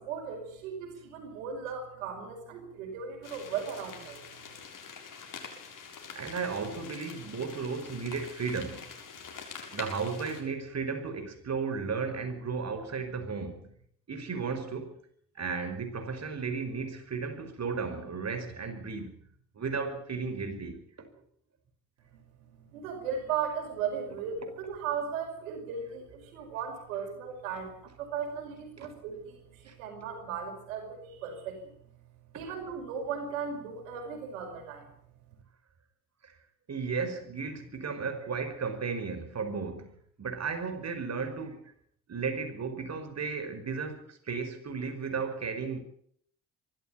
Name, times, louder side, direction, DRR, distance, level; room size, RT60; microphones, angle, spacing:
voice 1, 0.0-4.2 22.7-31.7 32.3-34.9, right 6 dB, 85° right, 5.4 m, -37 dB
sound 1, 3.2-10.4, left 6 dB, 50° left, 7.0 m, -45 dB
voice 2, 6.2-8.9 9.7-13.7 14.1-14.9 15.4-19.1 19.6-20.8 28.8-28.9 29.7-29.8 32.3-32.6 36.2-36.3 36.7-39.9 40.2-41.7 42.1-45.8, right 5 dB, 40° right, 5.2 m, -34 dB
23.5 x 13.5 x 8.9 m
hypercardioid pair, 55°, 39 cm